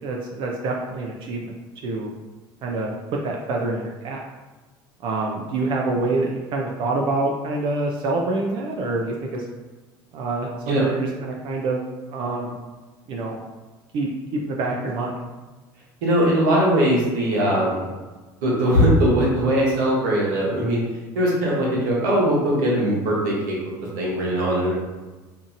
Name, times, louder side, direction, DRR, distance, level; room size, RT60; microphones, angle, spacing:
voice 1, 0.0-1.4 1.8-2.1 2.6-2.9 3.2-4.2 5.0-9.4 10.1-11.8 12.1-12.5 13.1-13.4 13.9-15.1, right 2 dB, 55° right, 0 dB, 0.4 m, -26 dB
voice 2, 16.0-17.9 18.4-20.8 21.1-23.6 24.0-24.7, equal, 80° right, -4 dB, 1.0 m, -20 dB
2.7 x 2.6 x 2.5 m, 1.2 s
supercardioid pair, 95°, 10 cm